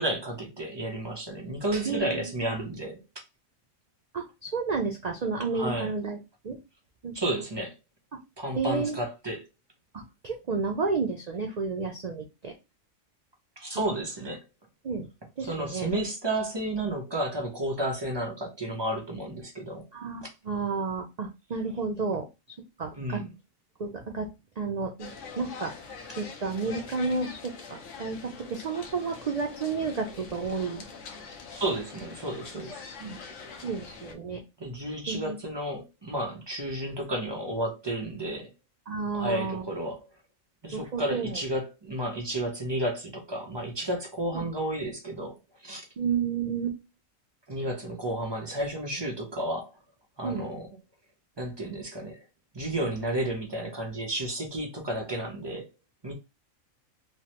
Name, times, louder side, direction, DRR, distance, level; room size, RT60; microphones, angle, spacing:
voice 1, 0.0-3.0 5.5-5.9 7.1-7.8 8.4-9.5 13.6-14.5 15.4-19.9 20.2-20.3 23.0-23.3 31.6-32.8 34.6-38.5 39.1-40.1 40.6-45.4 45.6-45.9 47.5-49.7 50.2-50.7 51.4-52.3 52.5-55.7 56.0-56.1, right 1 dB, 30° right, 0.5 m, -32 dB
voice 2, 1.9-2.2 4.1-6.2 6.4-6.6 7.0-7.2 8.5-9.0 9.9-12.5 14.8-15.1 15.4-15.9 19.9-22.3 22.8-23.2 23.8-24.3 24.6-25.7 26.2-30.8 33.0-33.2 33.6-34.4 35.1-35.4 38.9-39.6 40.7-41.4 44.3-44.5 46.0-46.8 50.2-50.4, right 4 dB, 85° right, 0.3 m, -31 dB
sound 1, 25.0-34.1, left 5 dB, 70° left, 1.0 m, -44 dB
3.2 x 2.1 x 2.9 m
omnidirectional pair, 1.4 m